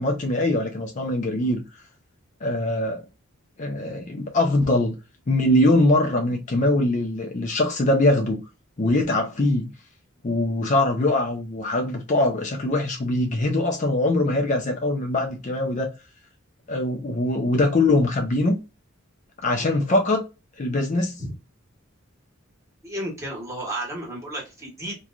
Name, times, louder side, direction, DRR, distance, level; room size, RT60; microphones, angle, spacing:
voice 1, 0.0-1.6 2.4-3.0 3.6-5.0 5.3-8.4 8.8-9.7 10.2-15.9 16.7-18.6 19.4-20.2 20.6-21.2, left 1 dB, 35° left, 0.5 m, -22 dB
voice 2, 22.8-25.0, right 1 dB, 15° right, 1.2 m, -33 dB
3.1 x 2.3 x 2.4 m
head